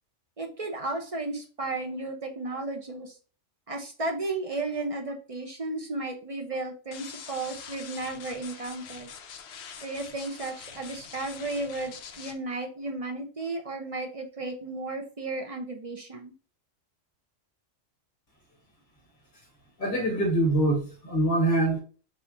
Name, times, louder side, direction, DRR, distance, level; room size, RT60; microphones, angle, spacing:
voice 1, 0.4-3.1 3.7-9.1 9.8-16.3, right 2 dB, 40° right, 0.6 m, -34 dB
sound 1, 6.9-12.3, left 7 dB, 65° left, 0.8 m, -44 dB
voice 2, 19.8-21.8, right 1 dB, 45° left, 1.7 m, -24 dB
5.5 x 2.5 x 2.8 m
omnidirectional pair, 1.3 m